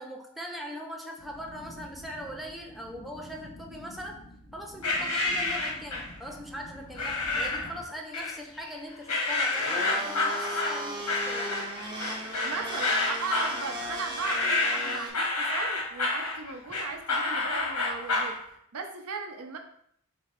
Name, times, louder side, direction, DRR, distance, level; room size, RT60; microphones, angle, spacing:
voice 1, 0.0-4.2 4.5-11.6, equal, ahead, 0 dB, 0.5 m, -41 dB
sound 1, 1.2-7.8, left 1 dB, 45° left, 0.8 m, -48 dB
sound 2, 4.8-6.2 7.0-7.7 8.1-8.7 9.1-18.4, left 2 dB, 85° left, 1.1 m, -29 dB
Domestic sounds home sounds, 9.5-15.1, right 1 dB, 20° right, 0.8 m, -37 dB
voice 2, 12.4-19.6, right 4 dB, 85° right, 5 dB, 0.6 m, -38 dB
4.4 x 3.1 x 3.7 m, 0.69 s
head